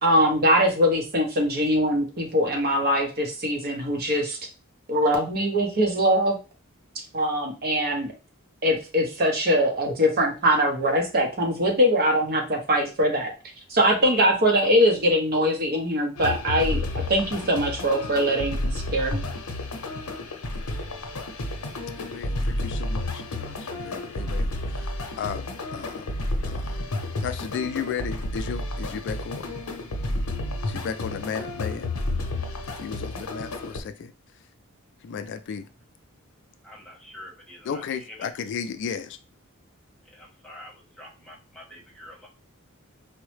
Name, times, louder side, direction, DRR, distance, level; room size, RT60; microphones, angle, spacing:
voice 1, 0.0-4.4 4.9-6.4 6.9-8.1 8.6-13.3 13.7-19.3, equal, 45° right, 0.9 m, -22 dB
sound 1, 16.2-33.8, left 1 dB, 85° left, 0.7 m, -31 dB
voice 2, 22.0-26.1 26.4-26.8 27.2-29.5 30.7-31.9 32.8-34.1 35.0-35.7 37.6-39.2, left 7 dB, 55° left, 0.3 m, -34 dB
voice 3, 36.6-37.8 38.1-38.3 40.1-42.3, left 1 dB, 5° left, 1.0 m, -46 dB
4.5 x 2.1 x 3.1 m
head